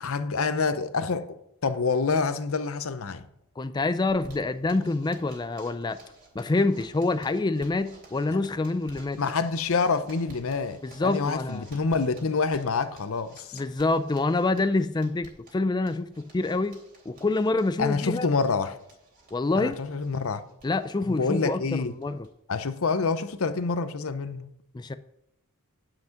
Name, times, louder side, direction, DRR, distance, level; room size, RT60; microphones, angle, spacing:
voice 1, 0.0-1.4 1.6-3.2 8.3-8.4 9.2-13.6 17.8-18.8 19.5-20.4 21.1-22.0 22.5-24.5, left 4 dB, 65° left, 0.7 m, -27 dB
voice 2, 3.6-6.0 6.3-9.2 10.8-11.7 13.5-16.8 17.1-18.3 19.3-19.8 20.6-22.3 24.7-25.0, left 2 dB, 20° left, 0.3 m, -26 dB
Zipper (clothing), 4.1-22.3 22.6-22.7 23.0-23.1 23.4-23.9, right 2 dB, 40° right, 3.4 m, -54 dB
10.5 x 5.9 x 5.8 m
head